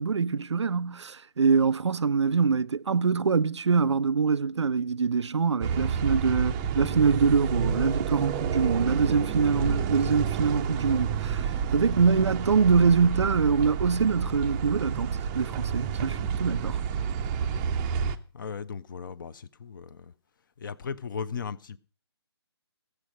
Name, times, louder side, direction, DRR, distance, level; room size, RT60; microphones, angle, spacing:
voice 1, 0.0-16.8, right 5 dB, 85° right, 0.5 m, -24 dB
sound 1, 5.6-18.2, right 7 dB, 15° right, 0.5 m, -29 dB
voice 2, 18.3-20.1 20.6-21.8, left 6 dB, 50° left, 0.6 m, -37 dB
14.5 x 6.4 x 6.2 m
figure-of-eight pair, 150°, 14 cm